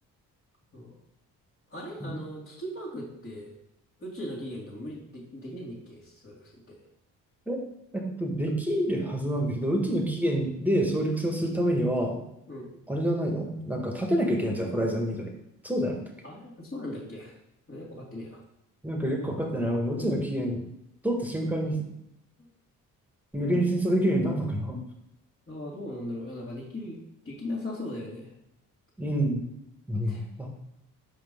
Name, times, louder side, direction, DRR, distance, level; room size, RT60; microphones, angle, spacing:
voice 1, 1.7-3.5 4.0-6.8 12.5-12.8 16.2-17.4 17.7-18.4 23.4-23.6 25.5-27.0 27.2-28.3 29.9-30.2, left 1 dB, 30° left, -7 dB, 2.1 m, -38 dB
voice 2, 7.9-12.2 12.9-15.3 15.6-16.0 18.8-20.6 21.0-21.7 23.3-24.8 29.0-29.4 29.9-30.5, equal, 5° right, 1 dB, 1.6 m, -27 dB
5.3 x 5.1 x 3.7 m, 0.83 s
supercardioid pair, 50°, 38 cm